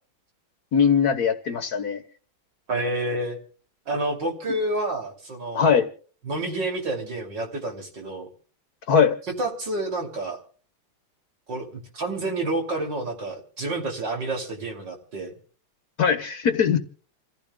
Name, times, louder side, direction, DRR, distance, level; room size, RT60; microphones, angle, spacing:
voice 1, 0.7-2.0 5.5-5.9 8.9-9.2 16.0-16.8, left 7 dB, 55° left, 1.4 m, -20 dB
voice 2, 2.7-3.4 3.9-5.8 6.2-8.3 9.4-10.4 11.5-15.3, right 2 dB, 60° right, 3.5 m, -29 dB
28.0 x 15.5 x 2.3 m
omnidirectional pair, 2.2 m